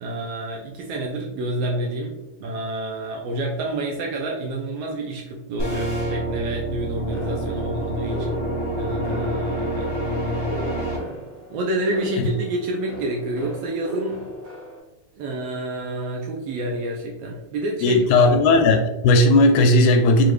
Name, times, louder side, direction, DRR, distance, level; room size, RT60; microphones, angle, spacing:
voice 1, 0.0-8.4 8.8-9.9 11.5-14.2 15.1-18.3, right 1 dB, 80° right, -1 dB, 1.4 m, -29 dB
sound 1, 5.6-11.0, equal, 30° left, 0.6 m, -26 dB
sound 2, 7.1-14.8, equal, 60° right, 2.2 m, -37 dB
voice 2, 17.8-20.3, left 2 dB, 80° left, 5 dB, 1.8 m, -16 dB
5.1 x 2.4 x 3.1 m, 0.97 s
omnidirectional pair, 3.4 m